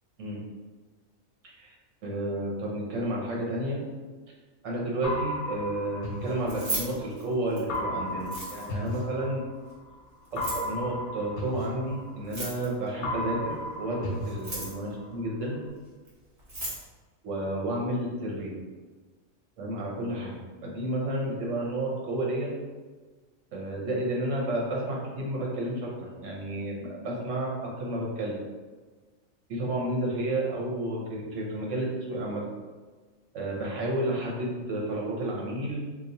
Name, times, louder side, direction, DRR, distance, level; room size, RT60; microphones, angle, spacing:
voice 1, 2.0-3.8 4.6-9.4 10.3-15.6 17.2-18.5 19.6-20.4 20.6-22.5 23.5-28.4 29.5-32.4 33.3-35.8, right 1 dB, 70° right, -2 dB, 1.2 m, -31 dB
sound 1, 5.0-7.1 7.7-9.8 10.4-12.7 13.0-15.1, left 1 dB, 65° left, 0.9 m, -35 dB
Keys jangling, 6.4-7.8 8.2-8.9 10.2-10.7 12.2-12.9 14.2-14.9 16.1-16.2 16.4-16.8, right 1 dB, 40° right, 1.3 m, -35 dB
3.0 x 2.5 x 3.9 m, 1.4 s
omnidirectional pair, 1.3 m